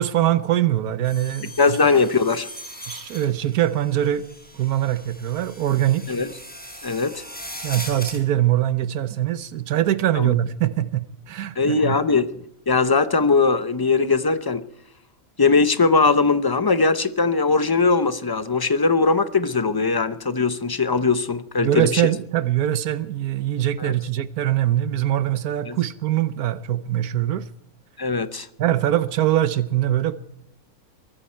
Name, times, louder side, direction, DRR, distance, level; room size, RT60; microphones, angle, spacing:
voice 1, 0.0-1.5 2.9-4.2 4.5-6.2 7.6-12.0 21.6-27.4 28.6-30.2, right 12 dB, 85° right, 1.3 m, -22 dB
sound 1, 1.0-8.2, equal, 5° left, 4.0 m, -39 dB
voice 2, 1.6-2.5 6.1-6.3 6.8-7.2 10.1-10.4 11.6-12.3 12.7-14.6 15.4-22.0 23.8-23.9 25.7-25.8 28.0-28.5, left 4 dB, 25° left, 0.5 m, -20 dB
23.5 x 13.5 x 4.5 m
omnidirectional pair, 1.5 m